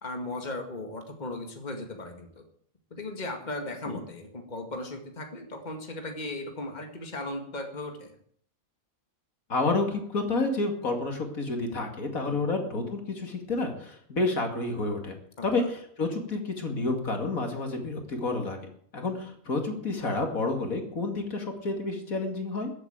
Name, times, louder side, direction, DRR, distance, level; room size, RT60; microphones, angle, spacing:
voice 1, 0.0-2.4 2.9-8.1 12.2-12.5 15.4-15.7, left 2 dB, 30° left, 4 dB, 2.2 m, -37 dB
voice 2, 9.5-15.2 15.4-18.6 18.9-22.7, left 3 dB, 75° left, 4 dB, 2.8 m, -29 dB
14.5 x 8.3 x 8.8 m, 0.62 s
omnidirectional pair, 1.5 m